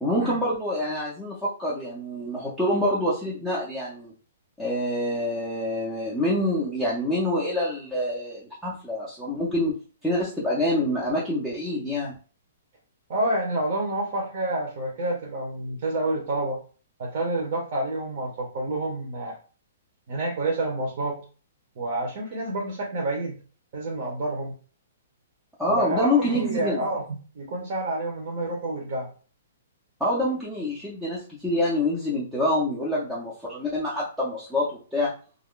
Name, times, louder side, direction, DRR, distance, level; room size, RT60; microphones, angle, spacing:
voice 1, 0.0-4.1 4.6-9.8 10.0-12.1 25.6-26.8 30.0-35.1, left 1 dB, ahead, -7 dB, 0.5 m, -26 dB
voice 2, 13.1-16.6 17.0-19.4 20.1-21.2 21.8-23.4 23.7-24.5 25.7-29.1, right 2 dB, 40° right, -1 dB, 0.7 m, -28 dB
2.4 x 2.0 x 3.6 m, 0.38 s
hypercardioid pair, 175°, 0 cm